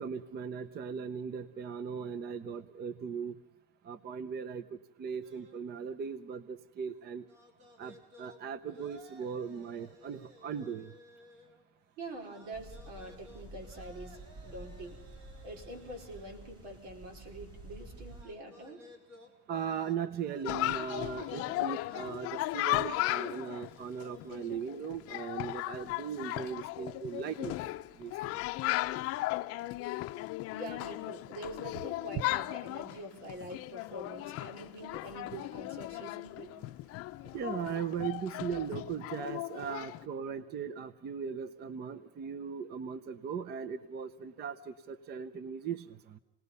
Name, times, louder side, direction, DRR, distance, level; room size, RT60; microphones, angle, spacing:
voice 1, 0.0-3.4 3.8-7.2 7.8-10.9 19.5-27.6 28.0-28.3 37.3-46.2, right 7 dB, 30° right, 14 dB, 0.7 m, -38 dB
sound 1, 5.2-5.6 7.2-11.8 12.2-16.5 18.0-24.6, equal, 50° right, 3.8 m, -58 dB
voice 2, 12.0-15.0 15.4-18.8 30.5-36.5, right 1 dB, 85° right, 4 dB, 4.8 m, -45 dB
sound 2, 12.5-18.2, right 1 dB, 15° right, 3.5 m, -50 dB
Chatter, 20.4-40.0, left 18 dB, 45° left, 0.6 m, -36 dB
28.0 x 19.0 x 5.5 m, 0.99 s
cardioid pair, 150°, 32 cm